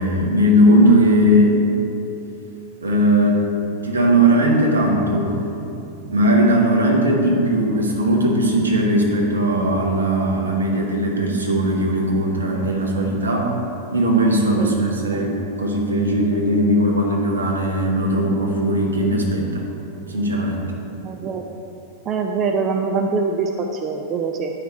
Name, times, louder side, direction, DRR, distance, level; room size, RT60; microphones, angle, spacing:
voice 1, 0.0-1.6 2.8-3.4 3.8-5.3 5.8-13.5 13.9-15.3 15.6-19.7 20.1-20.7, right 1 dB, 75° right, 0 dB, 1.1 m, -18 dB
voice 2, 21.0-21.4 22.1-24.5, right 4 dB, 30° right, 3 dB, 0.4 m, -23 dB
9.2 x 5.1 x 4.3 m, 2.8 s
figure-of-eight pair, 90°, 0 cm